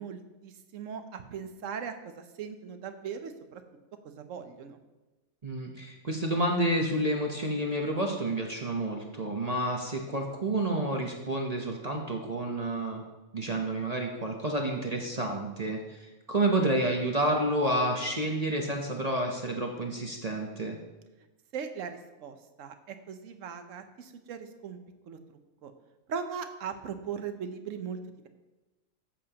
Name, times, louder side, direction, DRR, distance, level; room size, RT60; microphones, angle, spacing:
voice 1, 0.0-3.6 4.2-4.8 21.5-24.8 25.1-25.2 25.6-25.7 26.1-28.0, right 7 dB, 65° right, 8 dB, 1.1 m, -39 dB
voice 2, 5.4-13.0 13.3-20.8, right 1 dB, 35° right, 1 dB, 0.8 m, -29 dB
13.5 x 7.3 x 2.9 m, 1.1 s
omnidirectional pair, 1.5 m